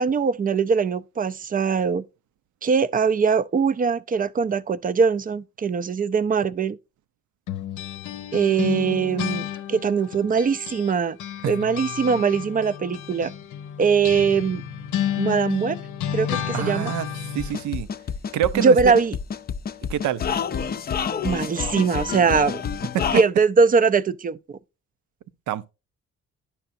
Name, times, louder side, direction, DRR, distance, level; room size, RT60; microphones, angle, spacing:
voice 1, 0.0-2.0 2.6-6.8 8.3-11.2 11.5-13.3 13.8-14.6 15.2-15.8 16.1-16.9 18.5-19.2 21.2-22.6 23.1-24.6, right 5 dB, 30° right, 0.4 m, -21 dB
sound 1, 7.5-10.9 11.2-17.6, left 10 dB, 75° left, 0.7 m, -31 dB
voice 2, 16.5-17.1 17.3-17.9 18.3-18.9 19.9-20.2 22.9-23.2 25.5-25.7, right 12 dB, 75° right, 0.6 m, -26 dB
sound 2, 17.4-23.2, left 7 dB, 30° left, 0.5 m, -28 dB
9.9 x 5.8 x 2.5 m
cardioid pair, 90°, 30 cm